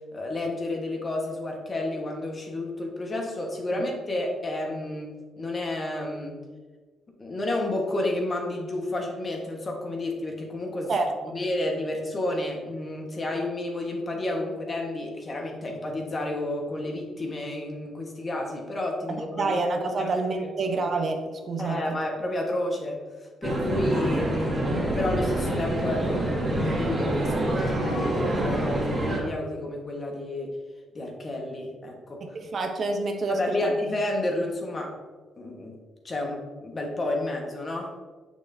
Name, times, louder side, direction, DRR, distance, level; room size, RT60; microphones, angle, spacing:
voice 1, 0.1-6.4 7.2-10.9 11.2-19.5 19.9-20.1 20.4-20.5 21.6-23.0 23.4-30.5 30.9-32.2 33.3-34.9 35.4-35.8 36.0-37.9, left 1 dB, 35° left, 1 dB, 1.4 m, -31 dB
voice 2, 10.9-11.4 19.1-22.0 32.2-33.7, right 3 dB, 50° right, 4 dB, 0.8 m, -28 dB
sound 1, 23.4-29.2, right 1 dB, 25° right, 2.0 m, -26 dB
6.4 x 6.2 x 2.7 m, 1.4 s
cardioid pair, 90°, 0 cm